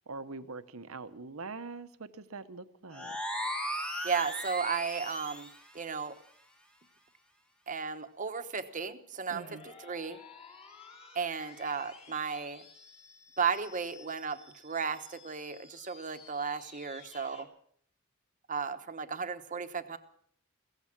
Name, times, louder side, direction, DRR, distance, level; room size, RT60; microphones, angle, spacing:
voice 1, 0.1-3.1 9.3-9.6, right 3 dB, 75° right, 11 dB, 1.0 m, -43 dB
sound 1, 2.9-5.6, equal, 5° left, 1.3 m, -37 dB
voice 2, 4.0-5.5 5.7-6.1 7.7-10.2 11.1-12.6 13.4-14.4 14.6-17.5 18.5-20.0, right 5 dB, 35° right, 9 dB, 1.1 m, -34 dB
sound 2, 9.3-17.4, left 4 dB, 30° left, 2.5 m, -54 dB
16.5 x 15.0 x 6.0 m, 0.62 s
head